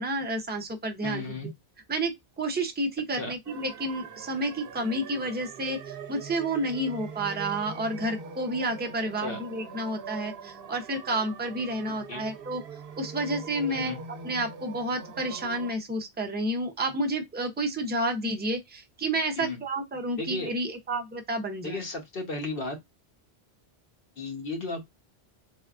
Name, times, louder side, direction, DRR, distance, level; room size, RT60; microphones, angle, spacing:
voice 1, 0.0-1.4 1.9-12.6 13.0-14.0 14.2-21.8, right 1 dB, 15° right, 0.3 m, -30 dB
voice 2, 1.0-1.5 3.2-3.3 9.2-9.4 12.1-12.2 13.7-14.0 19.4-19.6 20.2-20.5 21.6-22.8 24.2-24.8, left 2 dB, 60° left, 1.0 m, -34 dB
sound 1, 3.5-15.7, right 5 dB, 65° right, 0.8 m, -42 dB
3.5 x 2.3 x 2.3 m
omnidirectional pair, 1.1 m